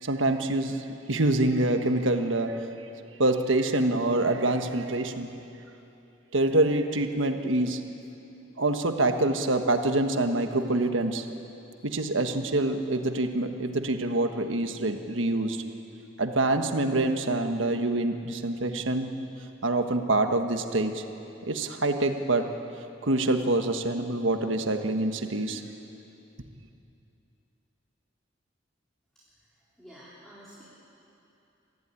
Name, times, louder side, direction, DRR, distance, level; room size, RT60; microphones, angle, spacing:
voice 1, 0.0-2.7 3.2-5.3 6.3-7.8 8.6-11.3 11.8-15.6 16.2-19.1 19.6-21.0 21.5-22.5 23.0-25.6, right 2 dB, 80° right, 6 dB, 1.4 m, -26 dB
voice 2, 29.8-30.6, equal, ahead, -9 dB, 3.9 m, -49 dB
24.0 x 15.0 x 9.7 m, 2.8 s
head